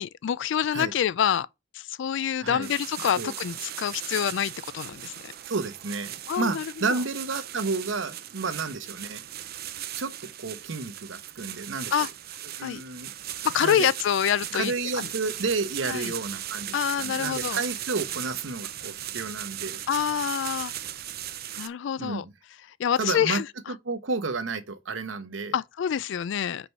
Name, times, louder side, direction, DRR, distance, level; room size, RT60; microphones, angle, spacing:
voice 1, 0.0-1.5 1.7-5.3 6.3-7.0 11.9-12.1 12.6-12.8 13.4-15.1 15.9-16.1 16.7-17.6 19.9-20.7 21.6-22.2 22.8-23.7 25.5-26.7, left 9 dB, 65° left, 0.3 m, -27 dB
sound 1, 2.6-21.7, right 12 dB, 55° right, 0.6 m, -37 dB
voice 2, 5.5-9.2 10.0-12.0 12.6-13.1 13.6-13.9 14.5-19.8 22.0-22.3 23.0-23.4 23.7-25.5, right 3 dB, 80° right, 1.0 m, -31 dB
5.2 x 4.7 x 5.4 m
head